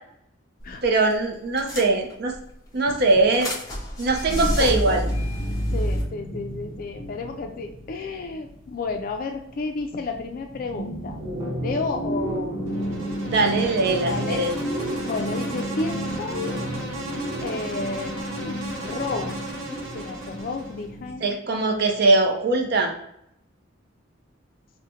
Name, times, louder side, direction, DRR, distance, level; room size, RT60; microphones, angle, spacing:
sound 1, 0.6-0.8 1.1-1.2 1.6-2.4 2.9-6.0, equal, 20° left, 0.8 m, -28 dB
voice 1, 0.8-2.4 2.7-3.6 4.0-5.0 13.2-14.5 21.2-22.9, right 2 dB, 55° right, 3 dB, 0.5 m, -21 dB
voice 2, 4.3-5.0 5.7-11.2 11.6-12.9 14.1-14.4 15.0-16.5 17.4-19.4 19.7-21.4, left 3 dB, 45° left, 4 dB, 0.3 m, -32 dB
sound 2, 4.3-9.8 10.1-21.2, equal, 25° right, 1.2 m, -32 dB
Insect, 12.7-20.9, right 1 dB, 85° right, 0.9 m, -36 dB
4.7 x 2.1 x 2.8 m, 0.76 s
head